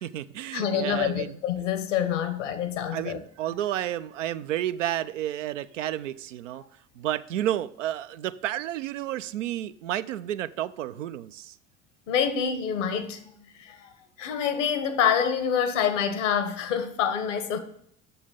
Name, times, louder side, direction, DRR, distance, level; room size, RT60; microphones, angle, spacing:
voice 1, 0.0-1.4 2.9-6.6 6.9-11.6, right 12 dB, 80° right, 0.5 m, -31 dB
voice 2, 0.5-3.2 12.1-13.3 13.6-13.9 14.2-17.6, left 8 dB, 75° left, 1.1 m, -26 dB
7.1 x 6.5 x 5.6 m
hypercardioid pair, 65°, 37 cm